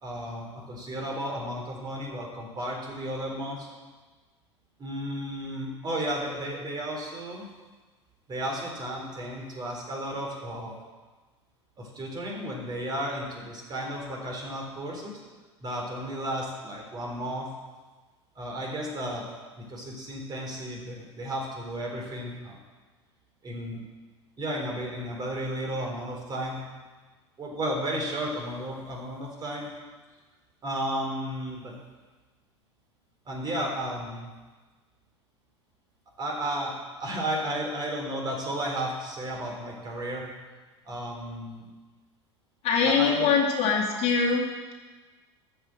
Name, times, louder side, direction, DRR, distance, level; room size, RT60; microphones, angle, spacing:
voice 1, 0.0-3.7 4.8-7.4 8.3-10.8 11.8-15.2 15.6-17.5 18.4-19.2 19.6-22.6 23.4-23.8 24.4-26.6 27.4-29.7 30.6-31.7 33.3-34.3 36.2-40.3 40.9-41.7 42.8-43.3, right 1 dB, 30° right, -1 dB, 4.0 m, -33 dB
voice 2, 42.6-44.5, left 5 dB, 45° left, 0 dB, 2.2 m, -23 dB
13.5 x 6.3 x 7.6 m, 1.3 s
figure-of-eight pair, 80°, 15 cm